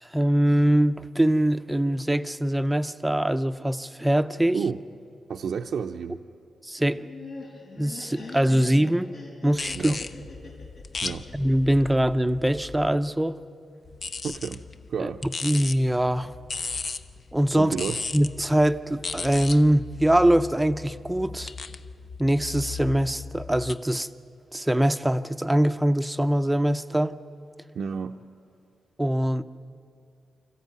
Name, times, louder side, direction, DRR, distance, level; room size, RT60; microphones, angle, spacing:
voice 1, 0.0-4.6 6.6-7.1 7.8-9.1 9.4-9.9 11.3-13.4 15.0-15.1 15.4-16.3 17.3-17.7 18.1-21.5 22.2-24.1 24.5-27.2 29.0-29.4, right 1 dB, 5° right, 9 dB, 0.6 m, -23 dB
voice 2, 5.3-6.3 9.7-10.0 11.0-11.3 14.2-14.6 14.9-15.2 17.6-18.0 27.7-28.2, right 6 dB, 70° right, 2 dB, 0.6 m, -31 dB
Laughter, 6.8-11.9, left 3 dB, 75° left, 5.9 m, -42 dB
sound 1, 9.5-13.0 13.8-23.7, left 4 dB, 45° left, 0.7 m, -37 dB
26.0 x 14.5 x 9.4 m, 2.4 s
wide cardioid pair, 115°, 0 cm